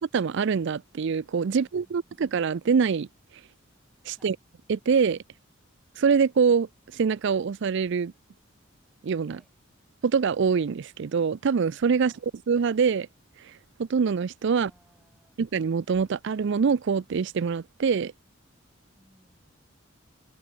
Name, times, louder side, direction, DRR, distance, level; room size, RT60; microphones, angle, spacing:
voice 1, 0.1-3.1 4.0-4.4 4.7-5.2 6.0-8.1 9.0-9.4 10.0-12.1 12.5-13.1 13.4-14.7 15.4-18.1, right 6 dB, 60° right, 0.4 m, -24 dB
voice 2, 1.5-2.1 4.1-4.4 9.3-9.5 12.0-12.2 14.5-15.4 18.9-19.5, equal, ahead, 6.9 m, -62 dB
open air
head